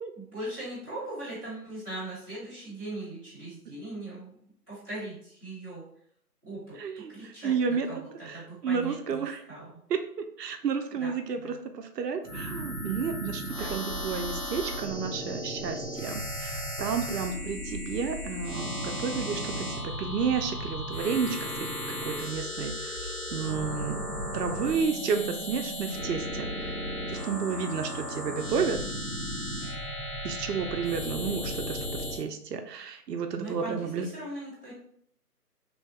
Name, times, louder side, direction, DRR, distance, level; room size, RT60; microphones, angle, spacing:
voice 1, 0.1-4.4 4.7-5.8 6.4-9.7 11.0-11.6 13.5-13.8 27.6-28.4 33.3-34.7, right 2 dB, 10° left, -16 dB, 1.0 m, -40 dB
voice 2, 6.8-7.1 7.4-7.9 8.3-9.4 9.9-24.0 24.3-26.8 27.1-28.8 30.2-34.1, right 6 dB, 85° right, 6 dB, 0.6 m, -32 dB
sound 1, 12.2-32.2, equal, 65° left, 1.0 m, -35 dB
3.2 x 2.3 x 2.6 m, 0.68 s
figure-of-eight pair, 165°, 47 cm